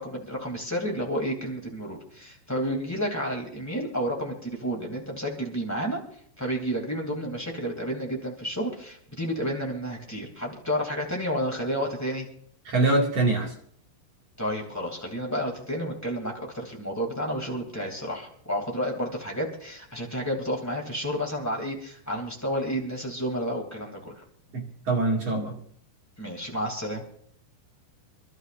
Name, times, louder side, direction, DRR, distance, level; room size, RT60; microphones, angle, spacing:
voice 1, 0.0-6.0 6.4-12.3 14.4-24.2 26.2-27.0, equal, 5° left, -1 dB, 1.3 m, -31 dB
voice 2, 12.6-13.5 24.5-25.6, right 2 dB, 45° right, -1 dB, 2.6 m, -24 dB
28.5 x 12.5 x 2.6 m, 0.63 s
omnidirectional pair, 5.5 m